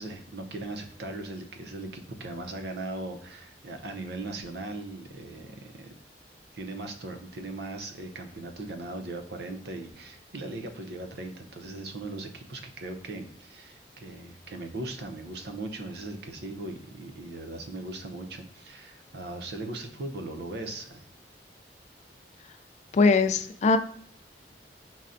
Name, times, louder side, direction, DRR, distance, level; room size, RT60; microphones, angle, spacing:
voice 1, 0.0-5.9 6.5-21.1, right 2 dB, 65° right, 5 dB, 0.6 m, -39 dB
voice 2, 22.9-23.8, left 4 dB, 40° left, 9 dB, 0.3 m, -21 dB
5.5 x 2.1 x 2.5 m, 0.63 s
head